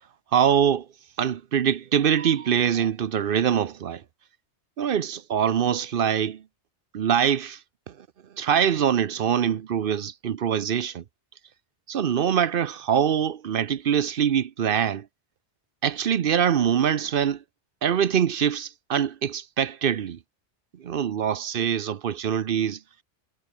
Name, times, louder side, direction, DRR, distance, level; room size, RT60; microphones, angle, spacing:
voice 1, 0.3-0.9 1.2-4.0 4.8-6.4 6.9-7.6 7.9-8.0 8.4-11.0 11.9-15.1 15.8-17.4 17.8-20.2 20.8-22.8, right 8 dB, 55° right, 0.8 m, -24 dB
omnidirectional pair, 1.2 m